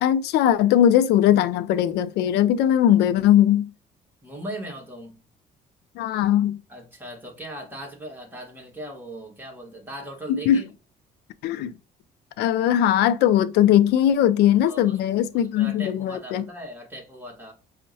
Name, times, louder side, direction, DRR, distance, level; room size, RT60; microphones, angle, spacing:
voice 1, 0.0-3.7 6.0-6.6 10.3-10.6 11.4-11.7 12.4-16.4, left 11 dB, 80° left, 0.4 m, -19 dB
voice 2, 4.2-5.2 6.7-10.6 14.6-15.0 15.3-17.5, right 1 dB, 10° right, 1.3 m, -39 dB
5.4 x 2.1 x 2.7 m
cardioid pair, 110°, 17 cm